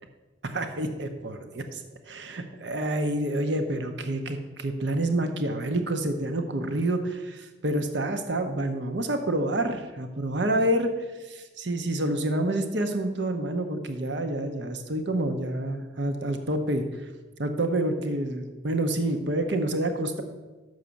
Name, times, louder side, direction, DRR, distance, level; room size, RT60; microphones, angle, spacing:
voice 1, 0.4-1.8 2.1-10.9 11.3-16.9 17.4-20.2, right 1 dB, 65° right, 7 dB, 0.8 m, -28 dB
6.4 x 6.2 x 6.9 m, 1.2 s
head